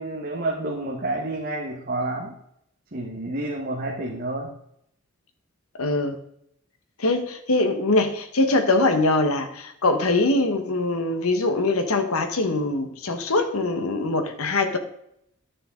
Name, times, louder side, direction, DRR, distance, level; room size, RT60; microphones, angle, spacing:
voice 1, 0.0-2.3 2.9-4.5, right 2 dB, 45° right, -2 dB, 1.3 m, -29 dB
voice 2, 5.8-6.2 7.0-14.8, left 2 dB, 85° left, 7 dB, 1.2 m, -23 dB
11.5 x 6.7 x 3.8 m, 0.73 s
head